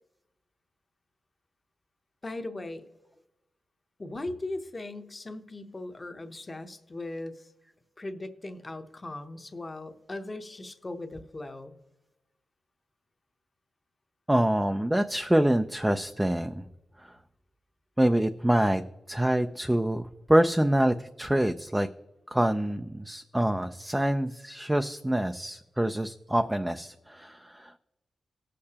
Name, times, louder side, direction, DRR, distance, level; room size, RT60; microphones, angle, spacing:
voice 1, 2.2-2.8 4.0-7.5 8.0-11.8, left 2 dB, 25° left, 7 dB, 0.8 m, -38 dB
voice 2, 14.3-16.6 17.0-17.2 18.0-18.8 19.1-21.9 22.3-27.8, right 1 dB, 10° right, 7 dB, 0.3 m, -26 dB
18.0 x 6.6 x 2.8 m, 1.0 s
wide cardioid pair, 130°, 0 cm